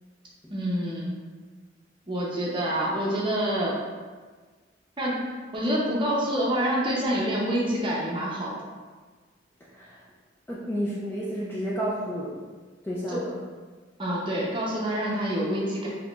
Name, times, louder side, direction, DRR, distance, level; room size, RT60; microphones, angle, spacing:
voice 1, 0.5-1.2 2.1-3.8 5.0-5.2 5.5-8.5 13.1-13.2 14.0-15.9, equal, 25° right, -4 dB, 0.7 m, -27 dB
voice 2, 10.5-12.4 12.8-13.4, equal, 10° left, -6 dB, 0.3 m, -31 dB
4.1 x 2.9 x 2.4 m, 1.4 s
head